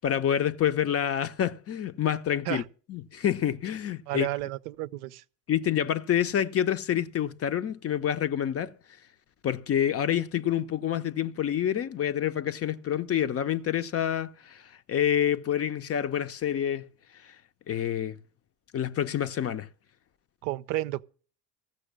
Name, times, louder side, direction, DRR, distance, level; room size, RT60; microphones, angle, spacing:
voice 1, 0.0-2.6 2.9-4.3 5.5-8.7 9.4-14.6 14.9-16.9 17.2-17.3 17.7-18.2 18.7-19.7, left 10 dB, 30° left, 0.6 m, -27 dB
voice 2, 4.1-5.2 20.4-21.0, right 16 dB, 65° right, 0.6 m, -32 dB
15.0 x 6.5 x 7.3 m
figure-of-eight pair, 60°, 49 cm